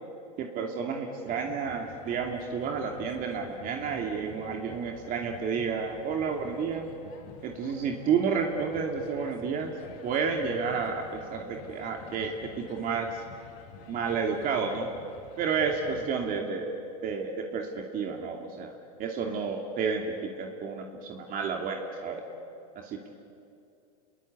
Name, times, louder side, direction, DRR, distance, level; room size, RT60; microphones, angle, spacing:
voice 1, 0.4-6.9 7.4-9.7 10.0-13.2 13.9-14.9 15.4-16.7 17.0-18.7 19.0-20.0 20.4-22.2 22.7-23.1, right 5 dB, 45° right, 2 dB, 2.7 m, -31 dB
sound 1, 1.3-16.4, left 7 dB, 60° left, 3.0 m, -49 dB
29.5 x 21.5 x 8.5 m, 2.6 s
hypercardioid pair, 105°, 21 cm